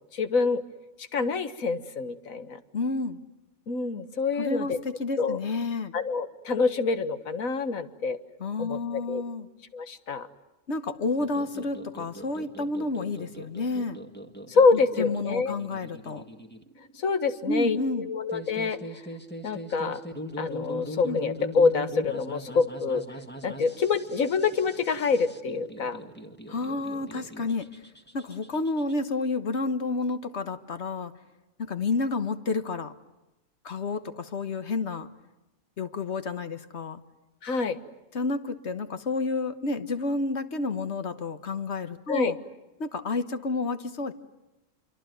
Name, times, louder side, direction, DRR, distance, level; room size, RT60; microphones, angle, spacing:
voice 1, 0.1-0.6 1.1-2.6 3.7-4.8 5.2-5.4 5.9-8.2 8.6-9.2 9.7-10.3 14.5-15.6 17.0-18.8 19.4-20.0 20.4-23.0 23.4-26.0 37.4-37.8 42.1-42.3, left 4 dB, 90° left, 11 dB, 1.8 m, -26 dB
voice 2, 2.7-3.2 4.4-5.9 8.4-9.5 10.7-14.0 14.7-16.2 17.5-18.1 21.0-21.2 26.5-27.7 28.1-31.1 31.6-32.9 33.6-35.1 35.8-37.0 38.1-42.4 42.8-44.1, left 3 dB, 55° left, 10 dB, 1.6 m, -30 dB
sound 1, 11.2-28.9, equal, 10° left, 1.6 m, -41 dB
26.5 x 24.0 x 9.3 m, 0.99 s
omnidirectional pair, 1.4 m